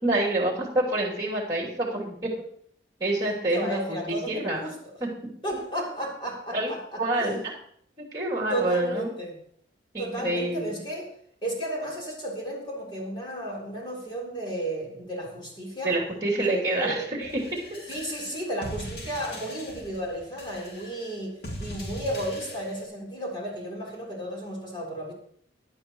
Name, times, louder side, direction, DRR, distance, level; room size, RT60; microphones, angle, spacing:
voice 1, 0.0-2.3 3.0-4.6 5.0-5.1 6.5-6.7 7.0-7.4 8.0-9.1 9.9-10.8 15.8-17.4, right 1 dB, 20° right, -3 dB, 2.7 m, -27 dB
voice 2, 3.5-4.8 5.4-7.4 8.5-9.3 10.0-11.1 11.4-16.0 16.4-17.1 17.9-21.3 21.6-25.1, right 1 dB, 25° left, -3 dB, 3.6 m, -33 dB
sound 1, 17.2-22.8, equal, 60° left, 2.4 m, -40 dB
16.5 x 11.0 x 3.0 m, 0.64 s
head